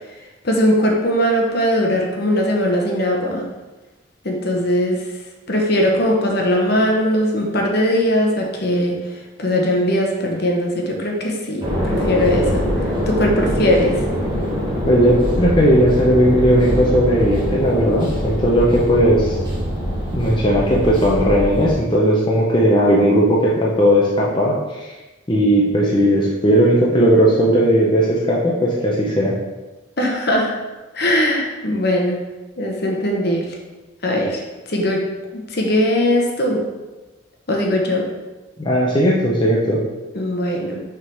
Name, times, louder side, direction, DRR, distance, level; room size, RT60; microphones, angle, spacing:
voice 1, 0.4-3.5 4.2-5.1 5.5-12.6 13.1-14.1 30.0-30.5 30.9-32.2 32.6-33.6 34.0-34.4 34.7-36.7 37.5-38.1 40.1-40.8, equal, 50° left, 1 dB, 1.0 m, -20 dB
sound 1, 11.6-21.7, equal, 20° right, 1.3 m, -23 dB
voice 2, 14.9-19.4 20.1-24.9 25.3-29.4 38.6-39.8, equal, 25° left, -4 dB, 0.7 m, -16 dB
6.2 x 3.8 x 4.5 m, 1.1 s
head